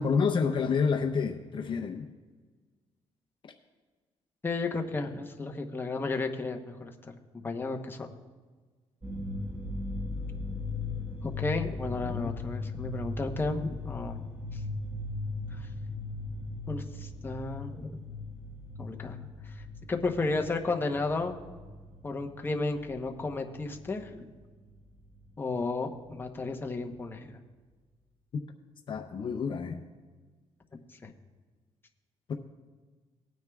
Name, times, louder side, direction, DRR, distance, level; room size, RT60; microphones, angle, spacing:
voice 1, 0.0-2.1 12.0-12.2 28.9-29.8 32.3-32.4, left 5 dB, 45° left, 4 dB, 0.6 m, -29 dB
voice 2, 4.4-6.9 7.3-8.1 11.2-14.2 14.5-14.6 15.5-15.7 16.7-18.0 18.8-19.2 19.4-19.6 19.9-21.4 22.0-24.2 25.4-27.4 31.0-31.1, left 3 dB, 20° left, 3 dB, 0.9 m, -33 dB
sound 1, 9.0-24.1 24.4-25.5 25.8-25.9 26.3-26.9, left 3 dB, 15° right, 1.5 m, -38 dB
19.0 x 9.3 x 2.3 m, 1.4 s
cardioid pair, 120°, 11 cm